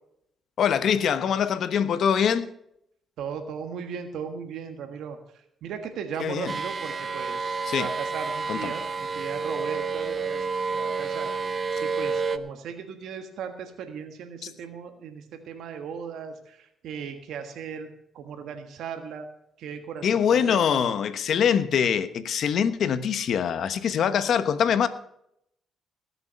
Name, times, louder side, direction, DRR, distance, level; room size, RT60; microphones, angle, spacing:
voice 1, 0.6-2.5 6.2-6.5 7.7-7.9 8.5-8.7 14.4-14.5 20.0-24.9, left 8 dB, 65° left, 1.1 m, -24 dB
voice 2, 3.2-10.4 10.7-17.9 18.1-19.3 19.6-20.8, right 6 dB, 80° right, 1.5 m, -37 dB
sound 1, 6.5-12.4, right 4 dB, 40° right, 0.9 m, -29 dB
19.0 x 7.1 x 5.7 m
cardioid pair, 90°, 0 cm